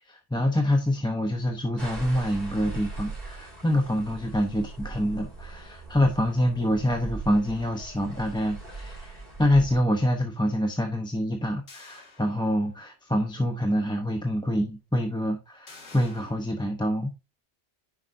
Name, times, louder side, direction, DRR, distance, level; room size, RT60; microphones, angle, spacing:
voice 1, 0.1-17.1, left 1 dB, 5° left, 0.7 m, -26 dB
sound 1, 1.8-9.8, right 3 dB, 50° right, 4.8 m, -40 dB
sound 2, 11.7-12.9 13.4-13.5 15.7-16.3, left 3 dB, 90° left, 2.0 m, -49 dB
9.8 x 4.9 x 2.6 m
omnidirectional pair, 1.2 m